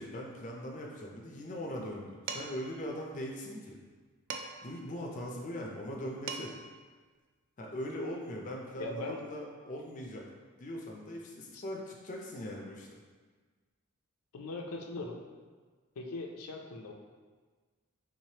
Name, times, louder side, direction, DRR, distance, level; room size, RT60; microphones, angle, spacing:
voice 1, 0.0-3.8 4.6-6.5 7.6-10.2 10.6-12.9, equal, 35° left, -1 dB, 0.4 m, -40 dB
Dishes pots and pans, 2.3-2.7 4.3-4.8 5.9-6.0 6.3-6.7, right 5 dB, 55° right, 0.3 m, -40 dB
voice 2, 8.8-9.2 11.5-11.6 14.3-15.2 16.0-16.9, left 2 dB, 90° left, 1 dB, 0.5 m, -39 dB
3.7 x 3.1 x 2.8 m, 1.4 s
head